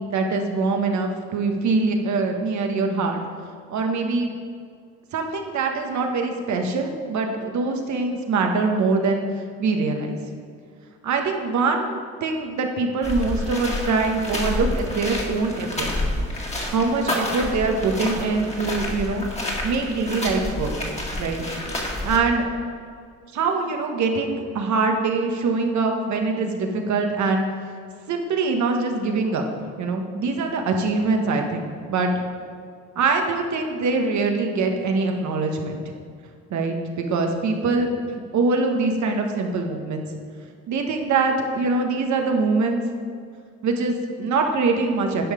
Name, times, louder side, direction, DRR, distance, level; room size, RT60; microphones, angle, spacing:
voice 1, 0.0-3.2 3.7-4.3 5.1-9.2 9.6-10.2 11.0-15.9 16.5-19.2 19.6-20.8 21.2-21.4 22.0-22.4 23.3-27.4 28.1-29.4 29.8-31.6 31.9-32.2 32.9-36.0 36.5-37.9 38.3-40.1 40.7-42.8 43.6-45.3, right 3 dB, 70° right, 3 dB, 1.3 m, -23 dB
sound 1, 13.0-22.2, left 1 dB, 20° left, 1.9 m, -29 dB
10.5 x 5.5 x 5.0 m, 2.2 s
cardioid pair, 90°, 30 cm